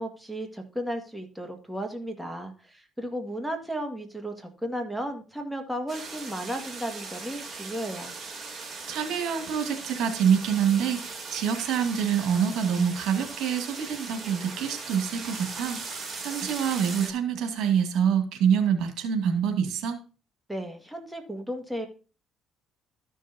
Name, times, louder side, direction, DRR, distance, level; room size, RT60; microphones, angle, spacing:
voice 1, 0.0-8.1 20.5-21.9, equal, ahead, 4 dB, 1.8 m, -34 dB
sound 1, 5.9-17.1, right 4 dB, 30° right, 2.9 m, -39 dB
voice 2, 8.9-20.0, right 8 dB, 75° right, 6 dB, 2.1 m, -26 dB
13.5 x 6.4 x 2.7 m, 0.35 s
cardioid pair, 90°, 0 cm